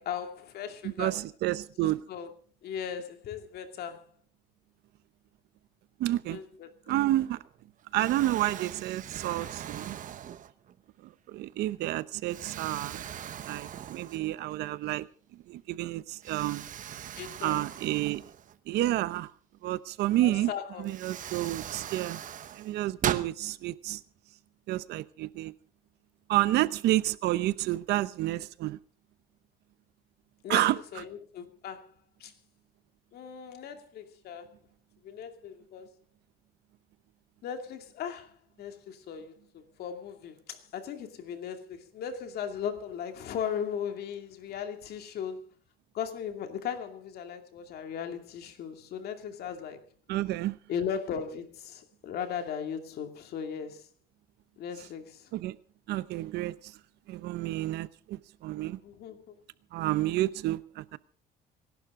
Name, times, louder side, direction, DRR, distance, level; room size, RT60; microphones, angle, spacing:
voice 1, 0.0-1.2 1.8-2.3 2.6-4.1 6.3-7.0 17.2-17.6 20.2-20.9 21.7-21.9 30.4-31.9 32.2-32.3 33.1-34.5 35.0-35.9 37.4-45.5 45.9-49.8 50.7-53.9 54.6-55.3 58.8-59.4, left 8 dB, 70° left, 2.4 m, -37 dB
voice 2, 0.8-2.0 6.0-6.4 6.9-7.4 7.9-10.0 11.0-13.0 13.5-15.1 15.5-16.7 17.4-18.2 18.7-19.3 19.6-20.5 20.8-22.2 22.5-24.0 24.7-25.5 26.3-28.8 30.5-30.8 50.1-50.6 55.3-55.6 55.9-56.8 57.1-58.8 59.7-61.0, right 15 dB, 80° right, 0.8 m, -30 dB
Explosion, 7.3-7.6 8.0-10.8 11.4-11.6 12.3-14.5 14.9-15.0 16.2-18.9 20.3-20.4 20.8-23.3, right 10 dB, 50° right, 1.0 m, -39 dB
26.0 x 12.0 x 3.7 m
cardioid pair, 110°, 17 cm